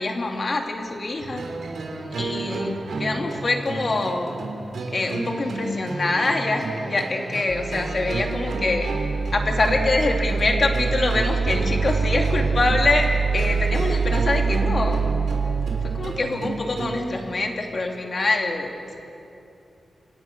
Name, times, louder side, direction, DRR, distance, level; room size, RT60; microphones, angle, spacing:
voice 1, 0.0-1.4 2.2-4.4 4.9-8.9 9.3-13.1 13.3-15.0 15.8-18.9, left 2 dB, 35° left, 2 dB, 2.7 m, -25 dB
sound 1, 1.2-17.0, right 3 dB, 85° right, 3.7 m, -31 dB
sound 2, 7.5-16.6, right 5 dB, 55° right, 2.2 m, -25 dB
28.0 x 27.0 x 6.3 m, 2.7 s
wide cardioid pair, 175°, 0 cm